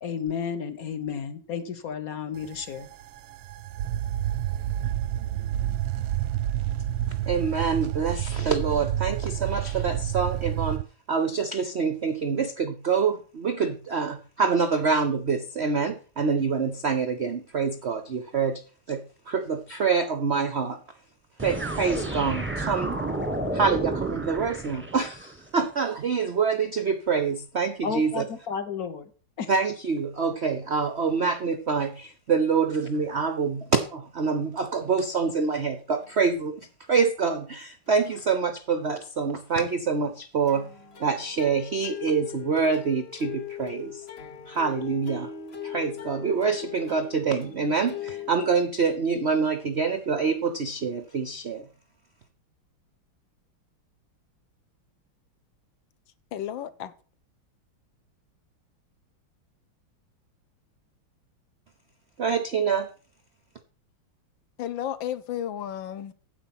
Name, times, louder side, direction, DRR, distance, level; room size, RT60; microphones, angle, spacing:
voice 1, 0.0-2.9 27.8-29.1 29.4-29.5, left 7 dB, 55° left, 1.2 m, -32 dB
sound 1, 2.4-10.8, right 12 dB, 90° right, 1.6 m, -29 dB
voice 2, 7.3-10.8 11.1-18.6 18.9-20.8 21.4-23.0 23.5-28.2 29.5-36.6 36.9-40.7 41.0-44.0 44.5-45.3 45.6-51.7 62.2-62.9, right 5 dB, 70° right, 0.6 m, -26 dB
sound 2, 21.4-25.3, right 2 dB, 10° right, 0.8 m, -31 dB
sound 3, 35.6-35.7 35.9-36.2 36.9-37.0 37.3-37.4 37.9-38.4 40.4-48.3, left 9 dB, 35° left, 1.2 m, -40 dB
voice 3, 56.3-56.9 64.6-66.1, left 10 dB, 70° left, 1.4 m, -32 dB
9.4 x 7.9 x 5.9 m
omnidirectional pair, 2.3 m